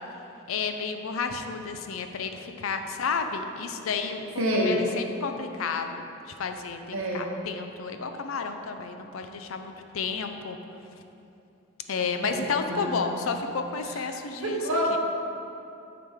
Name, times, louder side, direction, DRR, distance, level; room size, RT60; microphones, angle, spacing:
voice 1, 0.5-6.0 6.4-10.6 11.9-14.6 14.9-15.0, left 5 dB, 90° left, 6 dB, 0.5 m, -31 dB
voice 2, 4.4-4.8 6.9-7.3 12.2-12.4 12.7-12.8 13.8-14.0 14.4-14.9, right 1 dB, 90° right, -3 dB, 0.9 m, -27 dB
8.8 x 4.9 x 3.6 m, 2.8 s
head